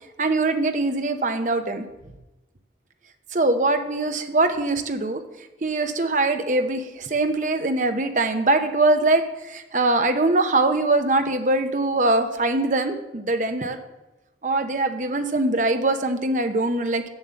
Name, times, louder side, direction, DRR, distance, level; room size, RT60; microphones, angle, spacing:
voice 1, 0.2-1.8 3.3-5.2 5.6-13.8 14.4-17.1, right 2 dB, 45° right, 8 dB, 0.8 m, -22 dB
7.3 x 7.2 x 7.7 m, 1.0 s
head